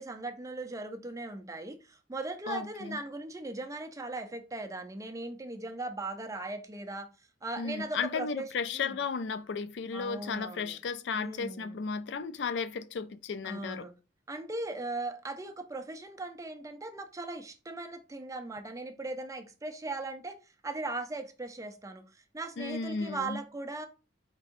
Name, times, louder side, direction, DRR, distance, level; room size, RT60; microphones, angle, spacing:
voice 1, 0.0-7.1 7.4-8.5 8.7-9.0 9.9-10.8 11.1-11.8 13.4-13.9 14.3-23.9, right 2 dB, 20° right, 0.6 m, -39 dB
voice 2, 2.5-3.0 7.6-13.9 22.6-23.4, left 5 dB, 70° left, 0.4 m, -34 dB
4.6 x 4.1 x 2.5 m
head